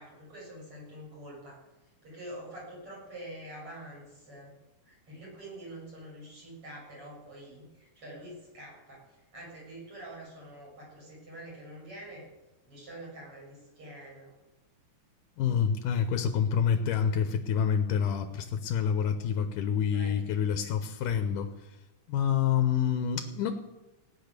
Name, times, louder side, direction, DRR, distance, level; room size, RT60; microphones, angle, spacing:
voice 1, 0.0-1.7 2.0-4.5 4.8-12.2 12.7-14.3 19.9-20.1, right 1 dB, 40° right, -5 dB, 7.9 m, -46 dB
voice 2, 15.4-21.8 22.1-23.5, left 8 dB, 85° left, 7 dB, 2.6 m, -27 dB
17.0 x 10.0 x 6.7 m, 1.1 s
omnidirectional pair, 3.7 m